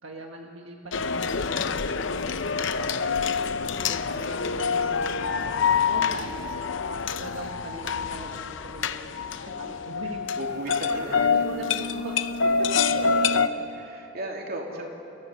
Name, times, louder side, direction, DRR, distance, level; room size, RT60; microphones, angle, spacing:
voice 1, 0.0-3.4 3.9-6.7 7.2-10.3 10.6-12.1 14.7-14.9, right 2 dB, 75° right, 1 dB, 1.6 m, -41 dB
sound 1, 0.9-13.5, left 5 dB, 65° left, 0.7 m, -26 dB
voice 2, 10.3-11.5 12.6-14.9, right 1 dB, 50° right, 0 dB, 3.2 m, -37 dB
29.5 x 17.0 x 8.1 m, 2.8 s
head